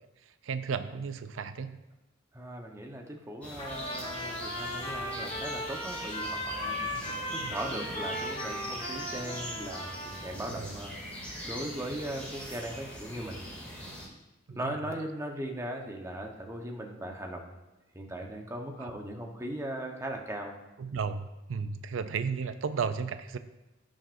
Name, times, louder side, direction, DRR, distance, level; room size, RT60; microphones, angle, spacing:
voice 1, 0.4-1.8 6.9-7.5 10.5-10.7 14.5-14.8 18.8-18.9 20.8-23.4, right 5 dB, 90° right, 11 dB, 0.5 m, -34 dB
voice 2, 2.3-13.4 14.5-17.5 17.9-20.6, right 1 dB, 15° right, 1 dB, 1.0 m, -39 dB
sound 1, 3.4-14.1, equal, 5° left, 2.4 m, -41 dB
Trumpet, 3.6-10.3, equal, 35° left, 1.5 m, -37 dB
16.0 x 6.2 x 2.6 m, 1.0 s
head